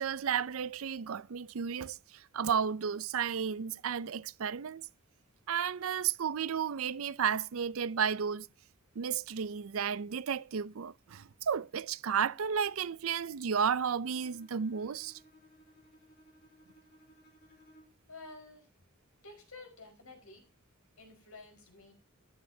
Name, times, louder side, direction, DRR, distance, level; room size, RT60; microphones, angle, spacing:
voice 1, 0.0-4.9 5.5-8.5 9.0-15.2, right 7 dB, 70° right, 0.5 m, -33 dB
Bowed string instrument, 14.0-18.1, equal, 45° left, 4.2 m, -61 dB
voice 2, 18.1-18.7 19.2-20.5 21.0-21.9, left 3 dB, 80° left, 5.0 m, -51 dB
14.0 x 9.9 x 2.8 m
head